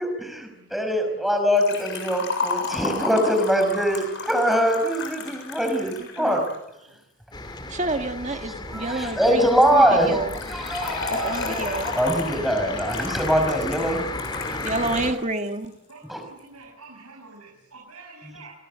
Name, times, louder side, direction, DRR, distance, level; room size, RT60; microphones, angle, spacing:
voice 1, 0.0-6.4 8.7-10.2 10.5-14.0 16.1-16.2 18.2-18.4, equal, ahead, 5 dB, 5.7 m, -23 dB
voice 2, 0.5-1.2 4.3-4.6 5.2-5.9 6.2-6.3 6.9-7.0 8.9-9.0 14.1-15.0 15.9-18.5, right 3 dB, 85° right, 0 dB, 7.0 m, -48 dB
Liquid, 1.6-6.5 10.3-15.1 15.4-15.5 16.4-16.5, left 4 dB, 55° left, 7.1 m, -32 dB
voice 3, 6.0-6.4 7.7-10.4 11.1-11.9 14.6-15.7, right 2 dB, 30° right, 6 dB, 1.6 m, -29 dB
sound 1, 7.3-15.1, left 2 dB, 20° left, 2.5 m, -34 dB
29.5 x 21.0 x 8.0 m, 0.85 s
head